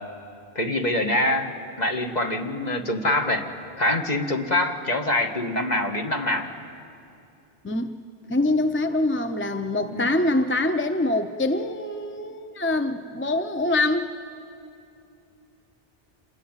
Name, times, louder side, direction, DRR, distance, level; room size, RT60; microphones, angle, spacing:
voice 1, 0.5-1.5 1.8-3.5 3.8-6.5 9.9-10.1, left 1 dB, 45° left, 4 dB, 1.8 m, -24 dB
voice 2, 8.3-14.1, left 2 dB, 15° left, 8 dB, 0.6 m, -24 dB
27.0 x 21.5 x 9.0 m, 2.7 s
omnidirectional pair, 1.0 m